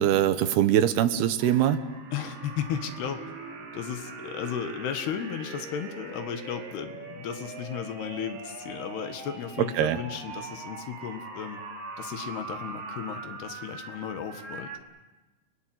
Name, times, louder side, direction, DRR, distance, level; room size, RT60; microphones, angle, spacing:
voice 1, 0.0-1.8 9.6-10.0, right 11 dB, 75° right, 11 dB, 3.1 m, -23 dB
sound 1, 1.4-14.8, right 4 dB, 55° right, 4.6 m, -41 dB
voice 2, 2.1-3.2 3.7-11.6 12.0-14.7, left 8 dB, 75° left, 8 dB, 3.6 m, -35 dB
30.0 x 20.5 x 7.9 m, 1.2 s
omnidirectional pair, 4.7 m